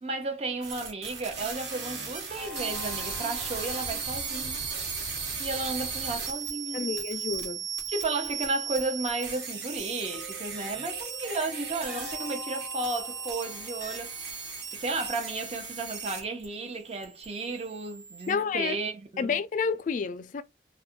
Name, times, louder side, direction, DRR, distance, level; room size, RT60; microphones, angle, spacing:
voice 1, 0.0-4.6 5.4-6.9 7.9-14.4 14.7-19.4, right 3 dB, 35° right, 0.6 m, -33 dB
sound 1, 0.6-16.4 16.7-18.3, right 6 dB, 85° right, 1.1 m, -36 dB
sound 2, 2.4-5.3 10.0-15.0, left 3 dB, 5° right, 0.8 m, -46 dB
voice 2, 6.7-7.7 18.3-18.8 19.2-20.4, left 5 dB, 45° left, 0.3 m, -30 dB
2.4 x 2.1 x 3.6 m
head